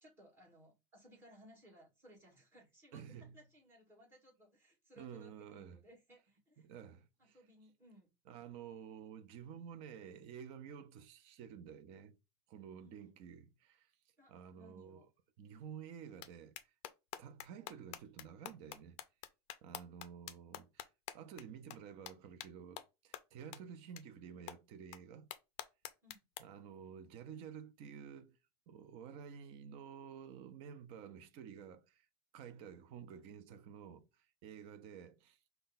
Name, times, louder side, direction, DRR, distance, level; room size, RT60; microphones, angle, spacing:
voice 1, 0.0-3.0 3.3-6.7 7.2-8.1 12.8-13.1 14.2-15.1 26.0-26.2, equal, 15° right, 2.0 m, -62 dB
voice 2, 2.9-3.4 5.0-5.8 6.6-7.4 8.3-12.2 12.5-13.9 14.3-15.0 15.4-16.7 17.2-19.0 19.6-20.9 21.1-25.3 26.4-28.4 28.7-32.1 32.3-35.5, right 8 dB, 40° right, 0.5 m, -51 dB
sound 1, 16.2-16.3 16.6-21.4 21.7-21.8 22.1-22.2 22.4-22.5 22.8-22.9 23.1-23.2 23.5-23.6 24.0-24.1 24.5-24.6 24.9-25.0 25.3-26.4, left 13 dB, 40° left, 0.4 m, -46 dB
5.4 x 2.3 x 3.9 m
supercardioid pair, 165°, 15 cm